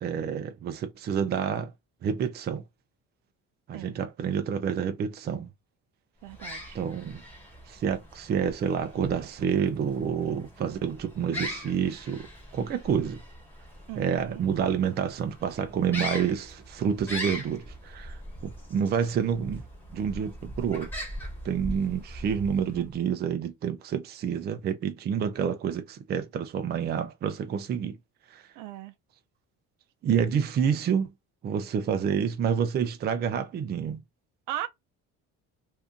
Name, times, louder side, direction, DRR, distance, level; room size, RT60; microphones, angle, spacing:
voice 1, 0.0-1.7 2.0-2.6 3.7-5.5 6.7-7.2 7.7-13.2 13.9-19.6 19.9-20.9 21.4-28.0 28.3-28.4 30.0-31.1 31.4-34.0, right 7 dB, 30° right, 0.5 m, -28 dB
sound 1, 6.2-23.0, equal, 5° left, 1.2 m, -41 dB
voice 2, 6.2-6.8 13.9-14.4 28.5-28.9 34.5-34.7, right 13 dB, 80° right, 0.7 m, -37 dB
2.7 x 2.5 x 3.6 m
cardioid pair, 165°, 31 cm